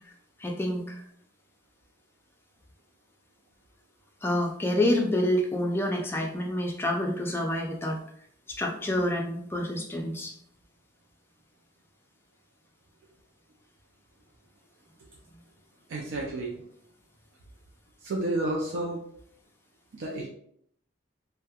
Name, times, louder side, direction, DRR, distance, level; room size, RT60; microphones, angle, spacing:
voice 1, 0.4-1.0 4.2-8.0 8.5-10.3, left 1 dB, 10° left, 1 dB, 0.3 m, -28 dB
voice 2, 15.9-16.6 18.0-19.0 19.9-20.3, right 2 dB, 80° right, -1 dB, 0.4 m, -31 dB
2.9 x 2.1 x 2.3 m, 0.67 s
head